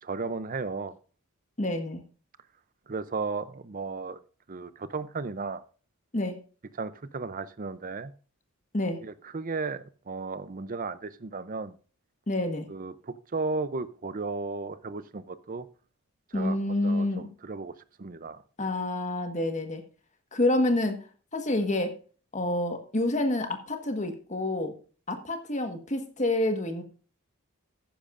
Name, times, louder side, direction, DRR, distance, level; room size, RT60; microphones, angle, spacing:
voice 1, 0.0-1.0 2.9-4.2 4.5-5.6 6.8-8.1 9.0-11.7 12.7-15.7 16.3-16.6 16.8-17.7 18.0-18.4, right 4 dB, 40° right, 14 dB, 0.6 m, -34 dB
voice 2, 1.6-2.0 6.1-6.4 8.7-9.0 12.3-12.7 16.3-17.3 18.6-19.8 20.3-21.0 21.3-21.9 22.3-24.7 25.1-26.8, left 1 dB, 35° left, 6 dB, 1.5 m, -28 dB
14.0 x 10.5 x 2.5 m, 0.39 s
head